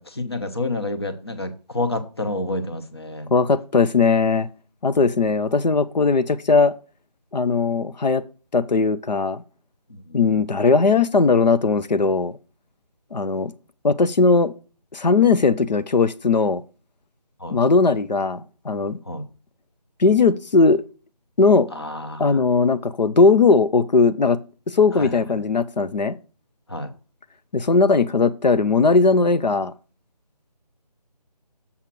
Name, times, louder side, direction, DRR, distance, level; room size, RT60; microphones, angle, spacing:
voice 1, 0.0-3.3 9.9-10.2 17.4-17.6 19.1-19.2 21.7-22.4 25.0-25.2 26.7-26.9, left 2 dB, 40° left, 1.0 m, -29 dB
voice 2, 3.3-4.5 4.8-6.7 7.3-8.2 8.5-9.4 10.1-12.3 13.1-13.5 13.8-14.5 14.9-16.6 17.5-19.0 20.0-20.8 21.4-21.7 22.2-24.4 24.7-26.2 27.5-29.7, left 4 dB, 90° left, 0.7 m, -18 dB
7.2 x 5.2 x 6.0 m
figure-of-eight pair, 180°, 21 cm